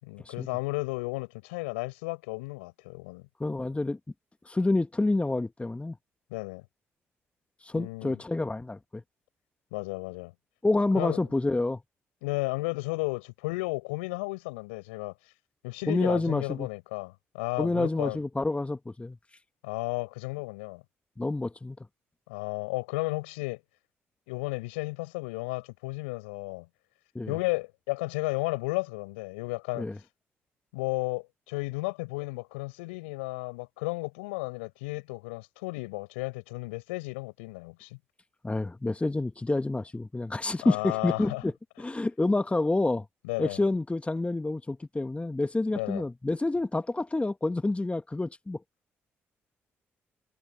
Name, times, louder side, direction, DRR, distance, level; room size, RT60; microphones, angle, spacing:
voice 1, 0.0-3.2 6.3-6.6 7.7-8.2 9.7-10.3 10.9-11.2 12.2-15.1 15.6-18.2 19.6-20.8 22.3-23.6 24.3-26.7 27.3-29.9 30.7-38.0 40.6-41.4 43.2-43.6 45.7-46.0, left 25 dB, 85° left, 6.4 m, -33 dB
voice 2, 3.4-4.0 4.4-6.0 7.6-9.0 10.6-11.8 15.9-16.7 17.6-19.2 21.2-21.8 27.1-27.4 29.7-30.0 38.4-43.0 43.4-48.6, left 2 dB, 20° left, 1.5 m, -28 dB
hypercardioid pair, 45°, 6 cm